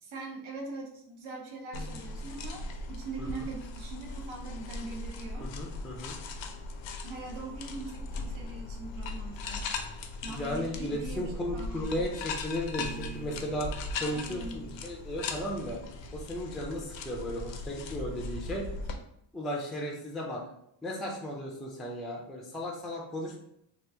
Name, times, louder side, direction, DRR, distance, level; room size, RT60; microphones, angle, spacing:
voice 1, 0.0-5.5 7.0-9.8 10.2-12.0 14.0-14.6, right 3 dB, 75° right, 0 dB, 0.9 m, -42 dB
sound 1, 1.7-19.0, left 3 dB, 75° left, 0.6 m, -39 dB
voice 2, 5.4-6.2 10.3-13.7 14.0-15.8 16.1-18.7 19.3-20.4 20.8-23.4, equal, ahead, -1 dB, 0.3 m, -35 dB
Piano, 12.8-15.7, right 4 dB, 30° right, 1.0 m, -47 dB
3.0 x 2.4 x 3.3 m, 0.76 s
wide cardioid pair, 150°, 47 cm